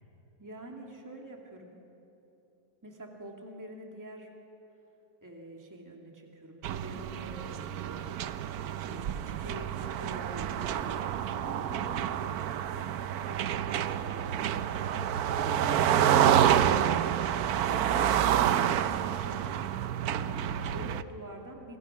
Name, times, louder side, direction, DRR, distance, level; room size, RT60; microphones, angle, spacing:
voice 1, 0.4-1.8 2.8-4.3 5.2-8.2 8.8-14.7 20.2-21.8, right 1 dB, 10° right, 1 dB, 2.2 m, -46 dB
sound 1, 6.6-21.0, right 10 dB, 70° right, 1.1 m, -28 dB
27.0 x 24.0 x 5.8 m, 2.9 s
omnidirectional pair, 1.9 m